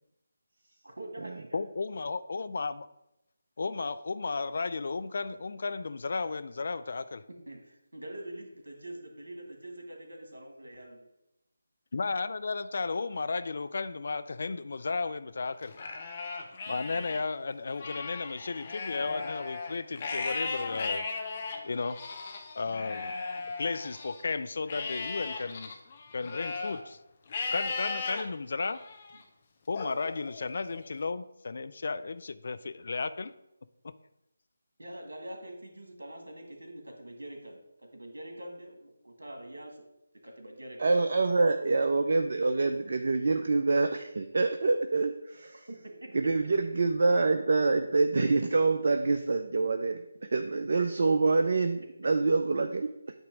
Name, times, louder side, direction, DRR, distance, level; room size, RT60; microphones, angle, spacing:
voice 1, 0.8-1.6 7.5-11.1 34.8-39.8 40.2-40.9 45.7-46.1, right 1 dB, 75° right, 3 dB, 1.8 m, -44 dB
voice 2, 1.5-2.9 3.6-7.2 11.9-15.7 16.7-21.1 21.6-22.0 22.5-23.1 23.6-25.7 26.1-27.0 27.5-28.9 29.7-33.3 33.8-33.9, left 4 dB, 50° left, 13 dB, 0.4 m, -34 dB
Livestock farm animals working animals, 15.6-17.2 17.7-24.2 24.7-26.8 27.3-28.2 28.7-29.2 29.7-30.8, left 4 dB, 35° left, 0.9 m, -37 dB
voice 3, 40.8-45.5 46.1-52.9, right 3 dB, 55° right, 6 dB, 0.5 m, -26 dB
8.9 x 3.0 x 6.1 m, 0.87 s
figure-of-eight pair, 155°, 0 cm